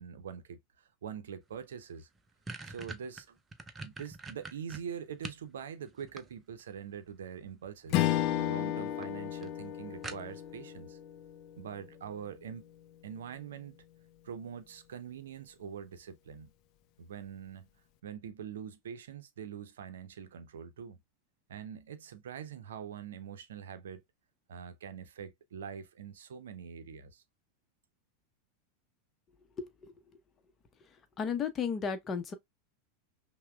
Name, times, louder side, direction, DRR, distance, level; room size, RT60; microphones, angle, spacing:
voice 1, 0.0-2.1 2.6-3.4 3.8-11.0 11.6-12.7 13.0-13.8 14.2-16.5 17.0-17.7 18.0-21.0 21.5-24.0 24.5-27.2, right 7 dB, 75° right, 0.6 m, -44 dB
sound 1, 1.6-1.7 2.0-5.5 5.9-6.7 7.8-8.2 8.6-8.7 9.0-9.1 9.4-9.5 10.0-10.6, right 3 dB, 20° right, 0.6 m, -44 dB
Strum, 7.9-12.5, left 13 dB, 50° left, 0.4 m, -33 dB
voice 2, 29.6-29.9 31.2-32.3, left 6 dB, 30° left, 0.8 m, -34 dB
5.6 x 2.2 x 2.2 m
hypercardioid pair, 90°, 0 cm